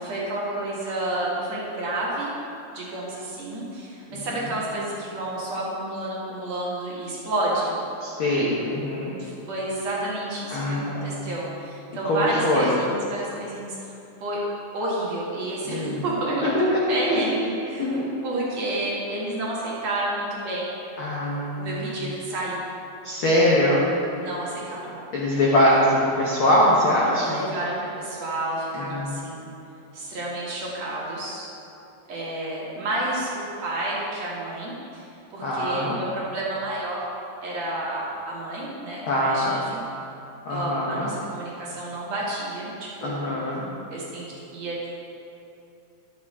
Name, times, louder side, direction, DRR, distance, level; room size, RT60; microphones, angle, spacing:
voice 1, 0.0-2.3 2.7-7.8 9.2-13.9 14.2-14.4 14.7-16.5 16.9-17.9 18.2-20.8 21.6-22.6 24.2-25.0 27.2-29.5 29.9-31.5 32.1-37.0 37.4-39.8 40.5-43.3 43.9-44.2 44.5-44.9, right 1 dB, 55° right, -6 dB, 2.5 m, -30 dB
voice 2, 8.0-9.1 10.5-11.3 12.0-12.7 15.6-16.0 16.4-16.6 17.0-17.3 17.8-18.1 21.0-22.1 23.0-23.8 25.1-27.4 28.7-29.1 35.4-36.0 39.1-39.5 40.4-41.1 43.0-43.6, left 1 dB, 85° left, -5 dB, 1.1 m, -23 dB
11.5 x 7.1 x 4.2 m, 2.8 s
omnidirectional pair, 4.1 m